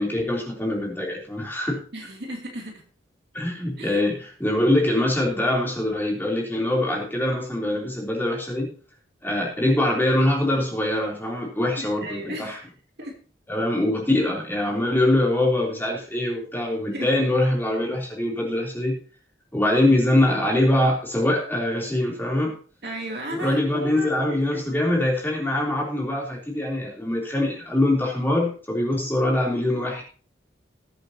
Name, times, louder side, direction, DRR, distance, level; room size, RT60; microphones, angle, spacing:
voice 1, 0.0-1.8 3.3-8.7 9.2-12.6 13.5-19.0 19.5-22.5 23.3-30.0, left 1 dB, 10° left, -2 dB, 3.5 m, -23 dB
voice 2, 1.9-2.8 3.8-4.0 11.8-12.6 13.0-13.2 16.9-17.2 22.8-24.6, right 1 dB, 60° right, 1 dB, 2.9 m, -35 dB
21.0 x 7.8 x 2.9 m, 0.40 s
head